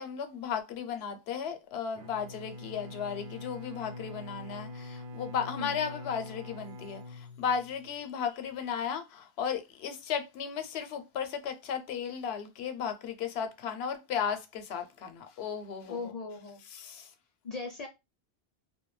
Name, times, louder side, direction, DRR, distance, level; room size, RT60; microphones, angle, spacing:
voice 1, 0.0-16.1 16.7-17.1, left 7 dB, 85° left, 0.8 m, -35 dB
Bowed string instrument, 1.9-8.0, left 2 dB, 75° right, 0.8 m, -44 dB
voice 2, 15.9-16.6 17.4-17.9, left 4 dB, 50° left, 0.5 m, -38 dB
2.2 x 2.2 x 3.0 m
omnidirectional pair, 1.0 m